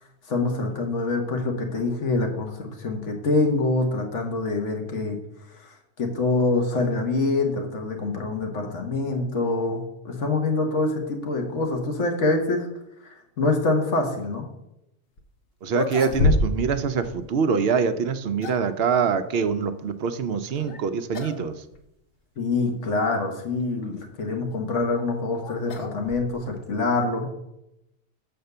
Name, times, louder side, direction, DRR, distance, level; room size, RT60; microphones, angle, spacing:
voice 1, 0.3-5.2 5.6-12.7 13.0-14.5 22.4-27.3, left 3 dB, 90° left, 3 dB, 1.5 m, -25 dB
sound 1, 15.2-15.3 15.7-16.8 17.0-17.2 18.0-18.8 20.6-20.8 21.1-21.4 21.7-21.8 22.6-22.7 24.5-26.6, left 2 dB, 55° left, 1.0 m, -27 dB
voice 2, 15.6-21.6, right 6 dB, 65° right, 10 dB, 0.8 m, -24 dB
6.9 x 4.3 x 6.6 m, 0.85 s
omnidirectional pair, 1.2 m